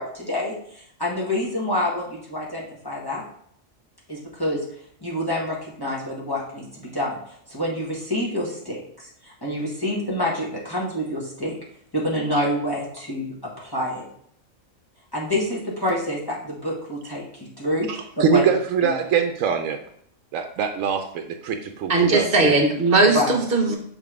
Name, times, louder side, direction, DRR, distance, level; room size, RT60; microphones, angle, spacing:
voice 1, 0.0-3.2 4.1-4.6 5.0-7.2 7.5-11.5 11.9-14.0 15.1-17.2 17.6-18.4 18.8-18.9 23.1-23.3, left 1 dB, 15° left, -4 dB, 1.5 m, -27 dB
voice 2, 17.9-19.8 20.3-22.6, right 7 dB, 75° right, 6 dB, 0.9 m, -23 dB
voice 3, 21.9-23.8, right 3 dB, 45° right, 3 dB, 1.3 m, -18 dB
5.9 x 3.8 x 4.7 m, 0.65 s
omnidirectional pair, 1.4 m